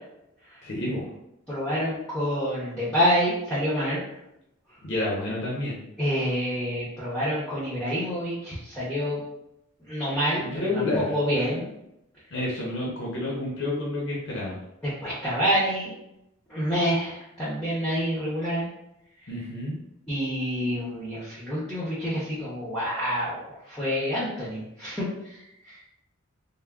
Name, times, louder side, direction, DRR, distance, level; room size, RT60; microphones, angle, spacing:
voice 1, 0.6-1.1 4.8-5.8 10.4-11.5 12.3-14.6 19.3-19.8, left 2 dB, 55° left, -4 dB, 0.6 m, -29 dB
voice 2, 1.5-4.0 6.0-9.2 9.9-11.7 15.0-15.9 16.5-18.7 20.1-25.8, equal, 5° left, -9 dB, 0.6 m, -27 dB
3.4 x 2.1 x 2.2 m, 0.82 s
head